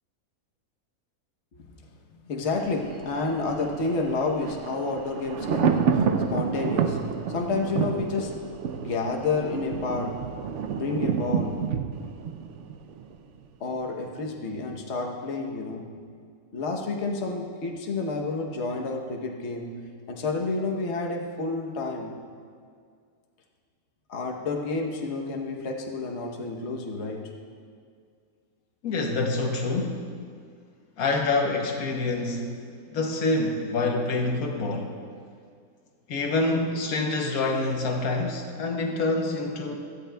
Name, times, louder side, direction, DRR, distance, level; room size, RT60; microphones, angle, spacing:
voice 1, 1.5-8.5 8.8-10.2 10.7-11.6 13.6-15.9 16.5-22.2 24.1-27.3, left 3 dB, 50° left, 1 dB, 1.2 m, -30 dB
Thunder, 2.5-13.5 13.8-13.9, right 6 dB, 65° right, 0.8 m, -29 dB
voice 2, 28.8-30.1 31.0-32.6 32.9-35.0 36.1-39.8, left 3 dB, 75° left, 2 dB, 1.3 m, -26 dB
16.0 x 12.5 x 2.3 m, 2.2 s
omnidirectional pair, 1.5 m